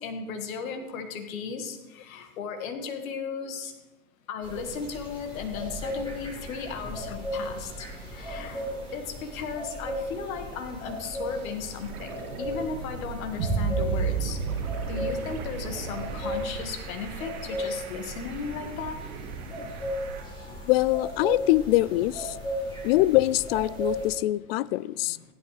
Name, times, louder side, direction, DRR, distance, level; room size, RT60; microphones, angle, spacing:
voice 1, 0.0-3.7 4.3-8.6 8.9-14.4 14.9-19.0 20.5-20.6 24.9-25.2, left 6 dB, 70° left, 6 dB, 1.8 m, -36 dB
sound 1, 4.4-24.1, equal, 10° left, 4.9 m, -36 dB
sound 2, 11.1-11.2 11.5-20.2, right 5 dB, 55° right, 1.9 m, -34 dB
sound 3, 11.7-17.5 17.9-20.4 22.8-22.9, right 5 dB, 70° right, 2.5 m, -42 dB
voice 2, 20.6-22.4 22.8-25.2, left 17 dB, 45° left, 20 dB, 0.4 m, -23 dB
15.0 x 11.0 x 3.3 m, 1.1 s
hypercardioid pair, 110°, 43 cm